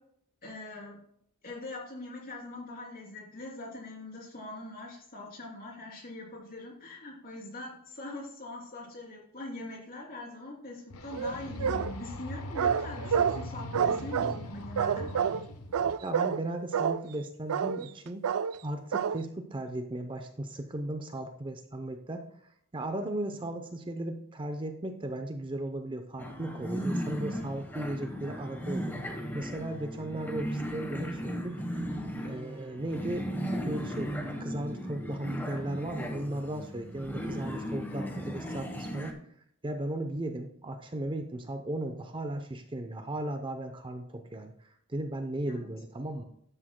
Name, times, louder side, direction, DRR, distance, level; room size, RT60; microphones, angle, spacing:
voice 1, 0.4-1.0 1.4-15.1 45.5-45.7, left 2 dB, 40° left, -2 dB, 3.2 m, -42 dB
sound 1, 10.9-15.9, left 2 dB, 90° left, 1.0 m, -40 dB
sound 2, 11.1-11.9 12.6-13.4 13.7-14.4 14.8-15.4 15.7-16.4 16.7-17.0 17.5-17.9 18.2-18.6 18.9-19.2, right 7 dB, 80° right, 0.4 m, -28 dB
voice 2, 16.0-18.3 18.6-22.3 22.7-31.8 32.2-39.2 39.6-46.2, right 1 dB, 20° right, 6 dB, 0.6 m, -36 dB
sound 3, 26.2-39.1, equal, 10° left, 1.1 m, -36 dB
12.5 x 9.8 x 2.2 m, 0.71 s
head